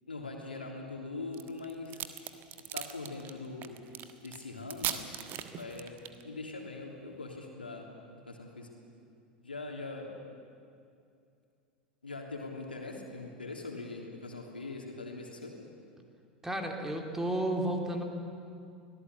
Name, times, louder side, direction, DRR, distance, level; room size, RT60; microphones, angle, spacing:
voice 1, 0.1-2.0 2.7-3.8 4.2-5.0 5.6-7.9 8.1-8.7 9.4-10.1 12.0-15.5, left 3 dB, 80° left, 1 dB, 3.2 m, -42 dB
sound 1, 1.3-6.2, right 11 dB, 40° right, 1.5 m, -38 dB
voice 2, 16.4-18.0, right 1 dB, 10° right, 2 dB, 2.9 m, -32 dB
24.0 x 17.5 x 8.3 m, 2.4 s
figure-of-eight pair, 85°, 5 cm